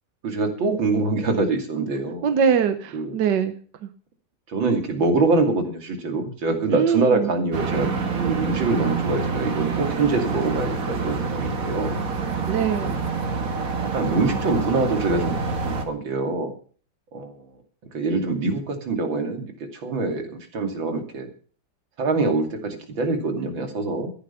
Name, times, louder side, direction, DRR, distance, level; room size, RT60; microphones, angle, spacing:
voice 1, 0.2-2.3 2.9-3.1 4.5-7.9 8.2-12.0 12.8-12.9 13.8-15.3 15.6-16.5 17.1-17.4 17.9-21.3 22.0-24.1, right 3 dB, 85° right, 6 dB, 3.2 m, -24 dB
voice 2, 2.2-3.5 3.8-3.9 6.7-7.3 12.5-13.0, right 7 dB, 65° right, 9 dB, 1.6 m, -22 dB
sound 1, 7.5-15.9, right 4 dB, 45° right, 2.2 m, -27 dB
14.0 x 10.5 x 5.7 m, 0.42 s
omnidirectional pair, 2.1 m